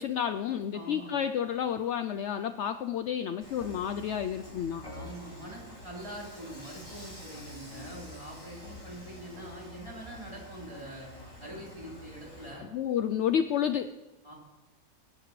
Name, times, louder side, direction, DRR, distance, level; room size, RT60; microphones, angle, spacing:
voice 1, 0.0-4.8 12.6-13.9, left 9 dB, 65° left, 10 dB, 0.8 m, -30 dB
voice 2, 0.7-1.1 4.9-11.1 11.4-12.7 14.2-14.3, right 1 dB, 20° right, -5 dB, 3.9 m, -44 dB
Dishes pots and pans / Frying (food), 3.4-12.6, left 1 dB, 80° left, 6.1 m, -47 dB
26.0 x 11.0 x 3.2 m, 1.1 s
omnidirectional pair, 1.4 m